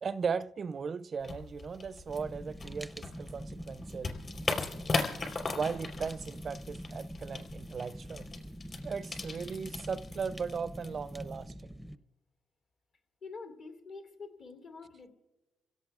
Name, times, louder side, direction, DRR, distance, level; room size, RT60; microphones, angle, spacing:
voice 1, 0.0-4.1 5.5-8.3 8.8-11.7, right 5 dB, 45° right, 0.4 m, -37 dB
sound 1, 1.2-11.4, left 3 dB, 40° left, 3.7 m, -39 dB
Fire, 2.1-11.9, equal, ahead, 0.6 m, -45 dB
voice 2, 13.2-15.1, left 4 dB, 70° left, 2.8 m, -46 dB
29.5 x 17.0 x 2.4 m
cardioid pair, 90°, 0 cm